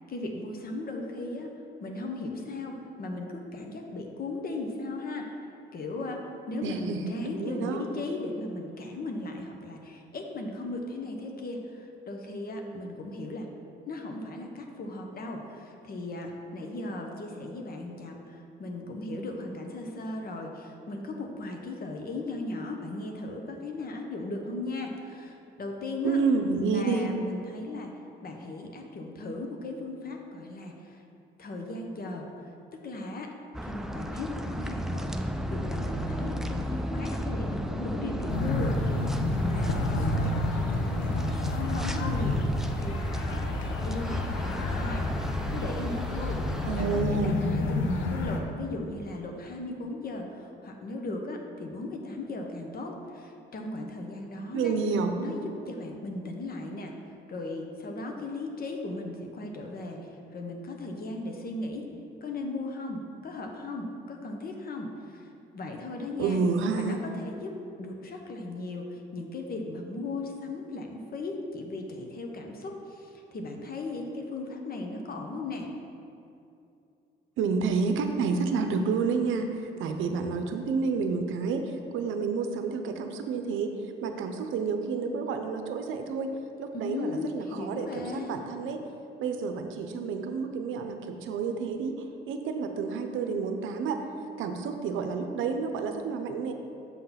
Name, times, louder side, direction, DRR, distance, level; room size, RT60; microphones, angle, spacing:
voice 1, 0.1-1.5 1.8-5.3 5.7-13.5 13.9-26.2 26.7-27.9 28.2-31.0 31.4-33.3 33.6-35.1 35.5-41.2 41.5-42.4 42.7-45.1 45.5-54.8 55.2-56.9 57.3-61.9 62.2-66.4 66.7-75.7 86.7-88.3, left 2 dB, 50° left, 2 dB, 0.9 m, -37 dB
voice 2, 6.6-7.8 26.0-27.1 46.6-47.4 54.5-55.1 66.2-67.0 77.4-83.7 84.0-86.3 86.6-88.8 89.2-94.0 94.4-96.5, right 4 dB, 80° right, 6 dB, 0.6 m, -29 dB
sound 1, 33.5-47.0, equal, ahead, 0.4 m, -34 dB
sound 2, 38.3-48.4, left 2 dB, 80° left, 0.8 m, -30 dB
7.4 x 3.8 x 5.6 m, 2.6 s
cardioid pair, 90°, 20 cm